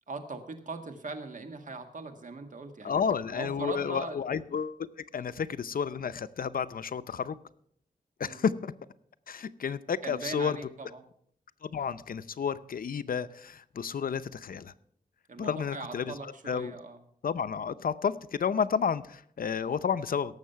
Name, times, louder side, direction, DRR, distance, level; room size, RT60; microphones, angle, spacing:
voice 1, 0.1-3.0 3.3-4.2 5.1-5.2 8.2-8.4 10.0-11.0 15.3-17.0, right 3 dB, 60° right, 7 dB, 1.8 m, -40 dB
voice 2, 2.8-7.4 8.2-8.7 9.3-10.6 11.6-14.7 15.4-16.7 17.2-20.4, left 6 dB, 80° left, 14 dB, 0.7 m, -31 dB
17.5 x 7.4 x 5.8 m, 0.65 s
wide cardioid pair, 90°, 15 cm